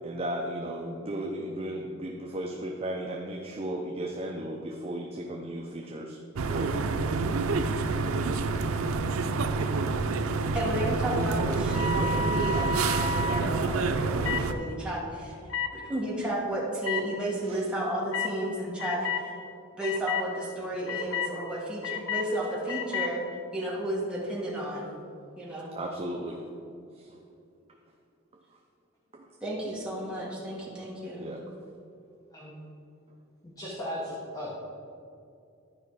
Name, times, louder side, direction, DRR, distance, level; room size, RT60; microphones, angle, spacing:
voice 1, 0.0-6.2 6.4-6.7 17.5-17.6 25.7-26.4 26.9-27.2 29.1-29.3 31.2-31.4, right 1 dB, 30° right, 0 dB, 0.6 m, -35 dB
sound 1, 6.4-14.5, right 3 dB, 90° right, 0.5 m, -28 dB
voice 2, 10.5-15.4 15.7-19.3 19.8-23.2 23.5-25.0 25.4-25.7 29.4-31.2, right 1 dB, 5° right, -6 dB, 1.8 m, -32 dB
sound 2, 11.6-13.4 14.2-14.4 15.5-15.7 16.8-17.0 18.1-18.3 18.8-19.2 19.8-20.2 20.9-21.3 21.8-22.3 22.7-23.1, left 4 dB, 85° left, 0.8 m, -31 dB
voice 3, 33.4-34.5, left 1 dB, 15° left, -6 dB, 1.2 m, -37 dB
12.0 x 5.0 x 4.8 m, 2.5 s
head